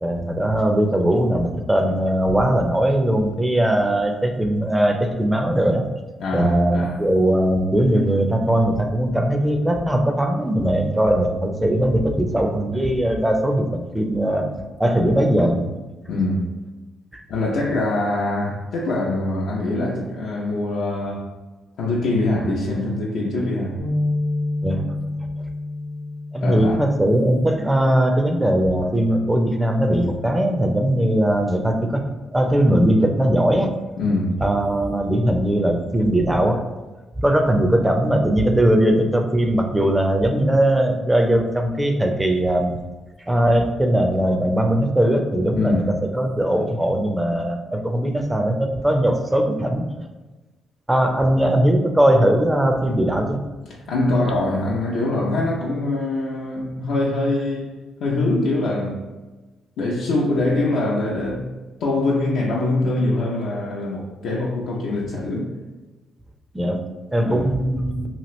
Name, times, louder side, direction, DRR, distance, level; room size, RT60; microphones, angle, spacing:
voice 1, 0.0-5.9 6.3-14.5 14.8-15.7 17.1-17.2 24.6-24.9 26.3-32.0 32.3-33.7 34.4-36.6 37.2-42.8 43.3-49.9 50.9-53.4 66.5-66.8 67.1-68.1, right 1 dB, 10° right, 0.5 m, -20 dB
voice 2, 6.2-7.0 16.1-16.5 17.3-21.3 21.8-23.8 26.4-26.8 34.0-34.4 45.5-45.9 53.9-57.7 58.0-59.0 59.8-61.5 61.8-65.5 67.2-67.5, left 2 dB, 75° left, 0.5 m, -23 dB
sound 1, 23.8-28.0 28.5-28.7 29.6-30.0, left 2 dB, 85° right, 1.2 m, -29 dB
2.9 x 2.5 x 3.0 m
cardioid pair, 90°, 0 cm